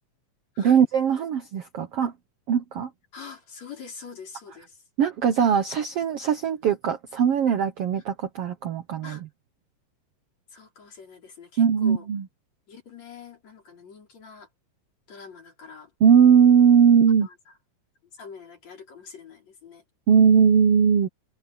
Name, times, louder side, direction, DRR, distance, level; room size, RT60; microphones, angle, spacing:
voice 1, 0.6-2.1 2.5-2.9 5.0-9.2 11.6-12.2 16.0-17.3 20.1-21.1, right 7 dB, 65° right, 1.6 m, -20 dB
voice 2, 3.1-4.8 7.9-8.0 9.0-9.2 10.5-12.1 12.7-14.5 15.1-15.9 17.2-17.5 18.1-19.8, left 6 dB, 50° left, 6.0 m, -45 dB
omnidirectional pair, 3.9 m